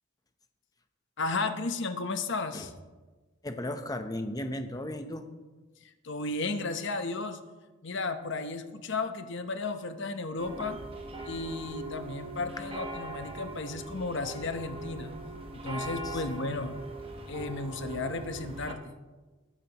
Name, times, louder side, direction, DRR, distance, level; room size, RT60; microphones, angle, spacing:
voice 1, 1.2-2.7 5.8-7.4 7.8-10.8 11.2-15.1 15.5-16.8 17.3-19.0, left 3 dB, 55° left, 8 dB, 0.9 m, -34 dB
voice 2, 3.4-5.2 16.0-16.2, left 1 dB, 15° left, 7 dB, 0.8 m, -35 dB
sound 1, 10.4-18.7, right 2 dB, 25° right, 1.0 m, -40 dB
21.0 x 9.0 x 3.0 m, 1.3 s
head